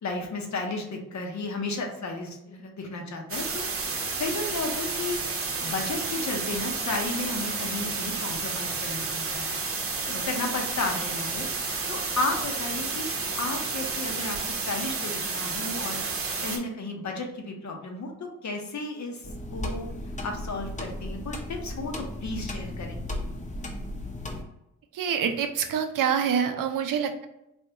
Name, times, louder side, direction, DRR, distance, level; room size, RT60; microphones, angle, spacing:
voice 1, 0.0-3.7 4.2-5.2 5.6-9.5 10.0-11.5 11.9-13.1 13.4-19.2 19.5-19.9 20.2-23.0, left 3 dB, 60° left, 3 dB, 0.8 m, -33 dB
sound 1, 3.3-16.6, right 4 dB, 45° right, 0.7 m, -31 dB
sound 2, 19.2-24.4, left 1 dB, 20° left, 0.7 m, -35 dB
voice 2, 24.9-27.3, right 7 dB, 75° right, 7 dB, 0.5 m, -26 dB
3.5 x 2.4 x 2.8 m, 0.88 s
cardioid pair, 55°, 33 cm